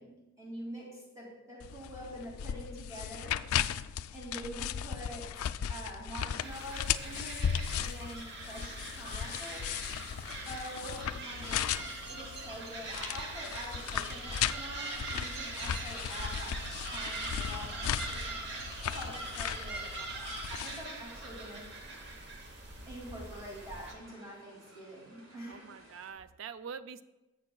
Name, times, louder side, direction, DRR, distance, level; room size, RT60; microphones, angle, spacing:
voice 1, 0.0-3.4 4.1-9.7 10.5-21.7 22.9-25.6, equal, 15° right, -4 dB, 2.4 m, -46 dB
sound 1, 1.6-20.9, left 9 dB, 90° left, 0.3 m, -37 dB
sound 2, 6.4-23.9, right 3 dB, 50° right, 1.0 m, -42 dB
sound 3, 8.5-26.1, right 1 dB, 85° right, 1.8 m, -58 dB
voice 2, 10.4-11.0 19.0-19.4 25.5-27.0, right 6 dB, 70° right, 14 dB, 0.3 m, -46 dB
12.0 x 7.8 x 2.3 m, 1.0 s
head